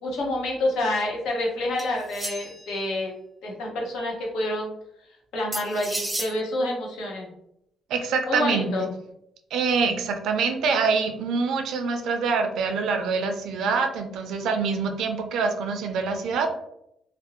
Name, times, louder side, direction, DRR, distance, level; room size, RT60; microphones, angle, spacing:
voice 1, 0.0-3.1 3.4-4.7 5.3-7.3 8.2-8.9, left 1 dB, 85° left, -2 dB, 0.8 m, -28 dB
sound 1, 1.8-2.7 5.5-6.3, right 1 dB, 15° right, 0.5 m, -32 dB
voice 2, 7.9-8.9 9.5-16.5, right 5 dB, 80° right, 6 dB, 0.4 m, -25 dB
2.5 x 2.0 x 2.8 m, 0.79 s
cardioid pair, 90°, 0 cm